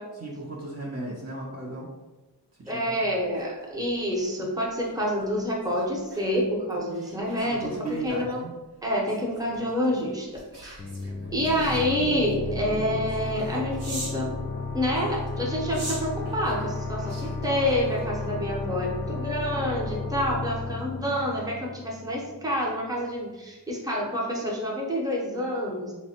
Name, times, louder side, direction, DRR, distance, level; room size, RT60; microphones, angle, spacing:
voice 1, 0.1-1.9 2.6-2.8 7.4-8.5, right 2 dB, 40° right, -4 dB, 0.7 m, -35 dB
voice 2, 2.7-8.4 8.8-10.8 11.3-14.3 14.7-25.9, equal, 10° right, -2 dB, 0.8 m, -28 dB
sound 1, 3.1-14.3 14.9-18.5 18.9-19.2, right 2 dB, 70° right, 1.1 m, -45 dB
sound 2, 10.8-22.2, left 3 dB, 30° left, 0.4 m, -33 dB
3.3 x 2.1 x 4.3 m, 1.1 s
wide cardioid pair, 70°, 41 cm